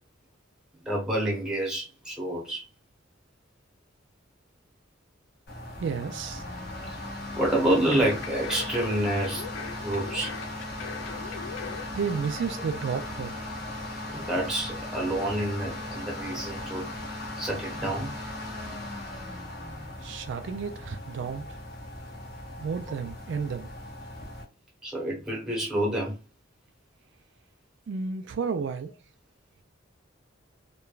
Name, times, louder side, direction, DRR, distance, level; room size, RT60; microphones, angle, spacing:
voice 1, 0.9-2.7 7.3-10.3 14.1-16.9 17.4-18.2 24.8-26.1, right 1 dB, 5° right, 0.9 m, -28 dB
sound 1, 5.5-24.4, left 1 dB, 55° left, 1.5 m, -38 dB
voice 2, 5.8-6.4 11.9-13.4 20.0-21.5 22.6-23.7 27.9-28.9, right 6 dB, 65° right, 0.3 m, -32 dB
sound 2, 7.9-11.9 12.3-12.4, left 7 dB, 75° left, 0.4 m, -40 dB
3.1 x 2.2 x 2.3 m
head